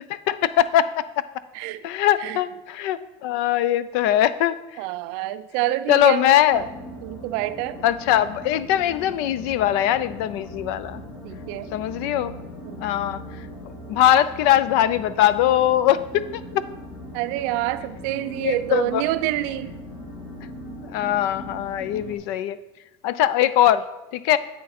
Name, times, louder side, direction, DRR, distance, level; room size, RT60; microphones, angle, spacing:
voice 1, 0.3-0.9 1.2-1.3 1.8-4.8 5.9-6.7 7.8-11.0 11.7-12.3 12.8-13.2 13.9-16.4 18.4-19.0 20.8-22.6 23.0-23.8 24.1-24.4, left 11 dB, 65° left, 15 dB, 0.4 m, -21 dB
voice 2, 4.8-6.7 7.0-7.8 11.2-11.7 12.6-12.8 17.1-19.7, right 15 dB, 60° right, 12 dB, 0.5 m, -27 dB
sound 1, 6.5-22.2, left 1 dB, 45° left, 1.9 m, -39 dB
8.2 x 6.4 x 4.2 m, 1.0 s
cardioid pair, 165°, 14 cm